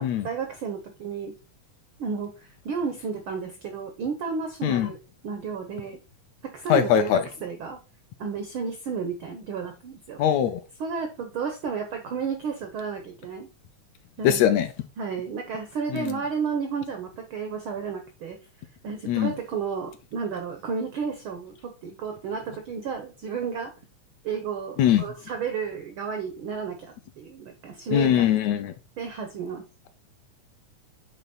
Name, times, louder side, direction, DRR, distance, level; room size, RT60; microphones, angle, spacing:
voice 1, 0.0-1.3 2.0-5.0 5.2-6.0 6.4-7.1 7.4-7.8 8.2-10.2 10.8-13.5 14.2-14.4 15.0-18.4 18.8-23.7 24.2-28.2 29.0-29.6, right 5 dB, 80° right, 1.1 m, -32 dB
voice 2, 6.7-7.3 10.2-10.6 14.2-14.7 15.9-16.2 19.1-19.3 24.8-25.0 27.9-28.7, left 10 dB, 80° left, 1.7 m, -21 dB
9.0 x 3.3 x 4.1 m
omnidirectional pair, 3.5 m